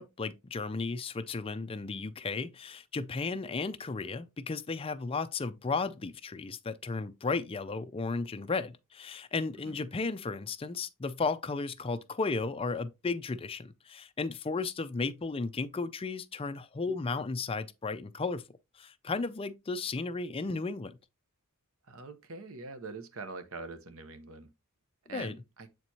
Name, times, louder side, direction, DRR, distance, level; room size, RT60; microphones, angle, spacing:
voice 1, 0.0-18.4 18.7-21.0 25.1-25.3, left 4 dB, 25° left, 0.4 m, -34 dB
voice 2, 21.9-24.5 25.1-25.7, right 3 dB, 65° right, 0.8 m, -44 dB
7.7 x 4.5 x 2.8 m
head